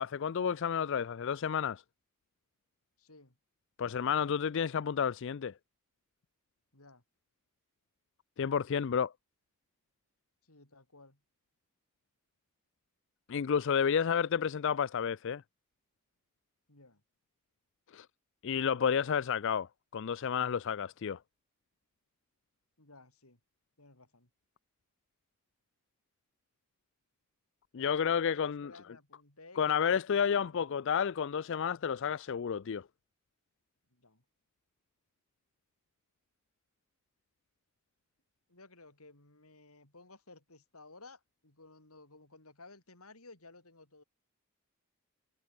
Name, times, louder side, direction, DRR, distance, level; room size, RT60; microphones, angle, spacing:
voice 1, 0.0-1.8 3.8-5.5 8.4-9.1 13.3-15.4 17.9-18.1 18.4-19.7 19.9-21.2 27.7-28.7 29.6-32.8, left 7 dB, 55° left, 0.4 m, -31 dB
voice 2, 3.0-3.4 6.7-7.0 10.4-11.2 16.7-17.0 22.8-23.4 23.8-24.3 27.8-30.8 33.9-34.2 38.5-44.0, left 3 dB, 80° left, 5.8 m, -56 dB
head